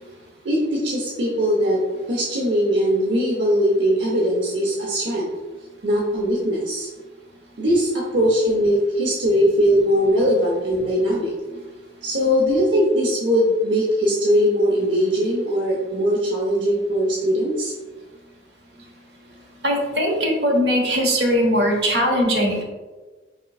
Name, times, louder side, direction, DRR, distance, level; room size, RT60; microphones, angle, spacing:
voice 1, 0.4-5.3 5.8-6.9 7.6-11.3 12.0-17.7, equal, 75° right, -4 dB, 0.7 m, -20 dB
voice 2, 19.6-22.6, equal, 60° right, -2 dB, 1.1 m, -20 dB
5.0 x 3.6 x 2.3 m, 1.3 s
head